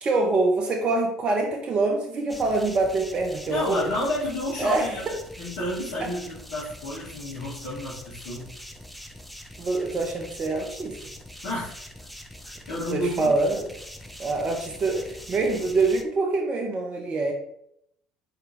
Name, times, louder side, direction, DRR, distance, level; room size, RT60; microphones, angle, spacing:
voice 1, 0.0-3.9 4.6-4.9 6.0-6.1 9.6-11.1 12.9-13.7 14.2-17.3, right 3 dB, 35° right, 2 dB, 0.7 m, -25 dB
sound 1, 2.3-16.0, equal, ahead, 0.5 m, -43 dB
voice 2, 3.5-8.5 11.4-11.8 12.4-13.4, left 1 dB, 60° left, -7 dB, 1.3 m, -31 dB
4.2 x 2.8 x 3.4 m, 0.74 s
figure-of-eight pair, 60°, 3 cm